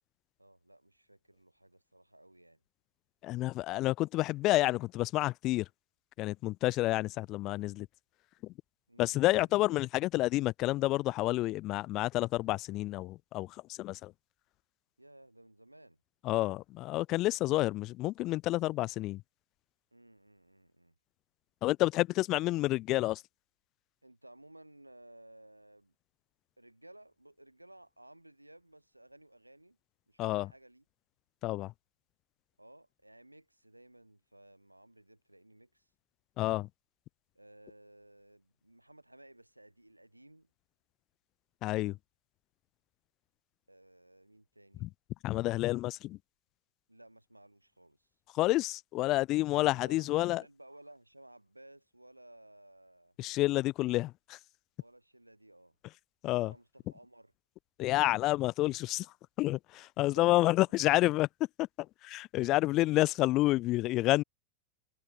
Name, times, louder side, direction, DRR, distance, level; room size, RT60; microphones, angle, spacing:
voice 1, 0.4-2.6 8.9-9.7 15.0-16.0 19.9-20.9 22.3-22.4 24.0-25.9 26.6-29.8 30.1-30.8 32.6-35.9 37.4-40.5 43.7-44.9 46.9-48.1 49.6-53.1 54.8-55.7 56.4-57.3 60.0-60.5, right 1 dB, 85° right, 4.0 m, -57 dB
voice 2, 3.2-5.6 6.2-7.9 9.0-13.5 13.8-14.1 16.3-19.2 21.6-23.2 30.2-30.5 31.4-31.7 36.4-36.7 41.6-41.9 44.8-44.9 45.2-46.2 48.4-50.4 53.2-54.4 56.2-56.5 57.8-59.1 59.4-61.3 61.6-61.7 62.0-64.2, left 17 dB, 35° left, 0.3 m, -29 dB
figure-of-eight pair, 90°, 0 cm